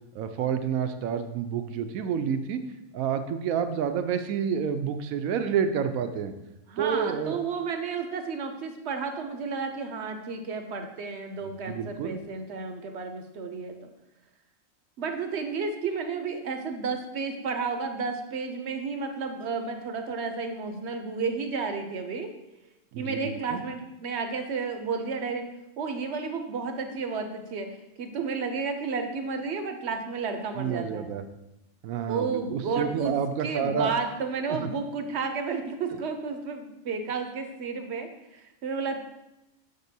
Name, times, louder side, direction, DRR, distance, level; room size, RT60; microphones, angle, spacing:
voice 1, 0.1-2.6 2.9-6.3 6.8-7.4 11.4-12.2 22.9-23.6 30.6-31.2 31.8-33.9, right 7 dB, 90° right, 9 dB, 1.0 m, -29 dB
voice 2, 6.7-13.7 15.0-22.3 23.0-25.5 25.8-31.1 32.1-39.0, right 4 dB, 60° right, 6 dB, 0.8 m, -32 dB
6.7 x 6.6 x 2.7 m, 0.92 s
omnidirectional pair, 1.4 m